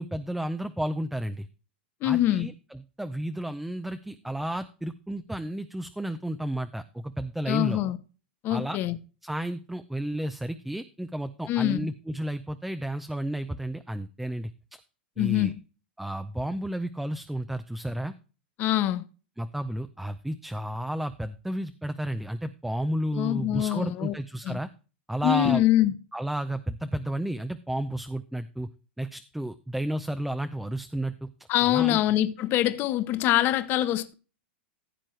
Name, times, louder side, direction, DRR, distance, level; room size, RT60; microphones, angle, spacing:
voice 1, 0.0-1.5 2.0-7.8 8.5-8.8 9.2-14.5 15.2-15.5 16.0-18.1 19.4-24.7 25.1-25.6 26.1-28.7 29.0-31.3 31.6-32.0, right 1 dB, 5° right, 0.6 m, -32 dB
voice 2, 2.0-2.5 7.5-8.0 8.4-9.0 11.5-11.9 15.2-15.5 18.6-19.0 23.1-24.1 24.4-24.6 25.2-25.9 31.5-34.1, left 14 dB, 35° left, 1.0 m, -24 dB
15.0 x 7.5 x 3.2 m
hypercardioid pair, 125°, 6 cm